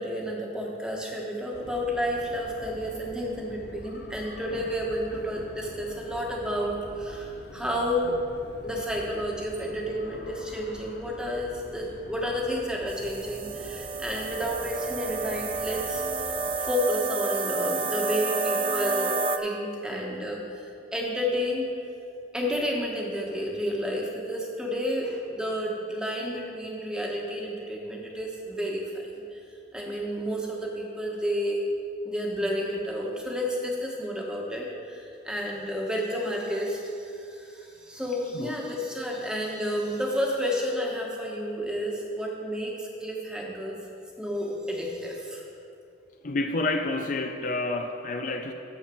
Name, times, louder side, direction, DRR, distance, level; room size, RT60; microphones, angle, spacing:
voice 1, 0.0-8.2 8.6-16.0 16.6-21.7 22.3-29.4 29.7-31.6 32.0-43.8 44.2-45.5, equal, 5° right, -2 dB, 1.3 m, -31 dB
sound 1, 1.5-16.6, left 1 dB, 70° left, 0.8 m, -46 dB
sound 2, 12.9-19.4, right 4 dB, 30° right, 0.5 m, -30 dB
voice 2, 46.2-48.5, left 2 dB, 45° left, 5 dB, 0.5 m, -29 dB
13.0 x 4.4 x 7.7 m, 2.6 s
head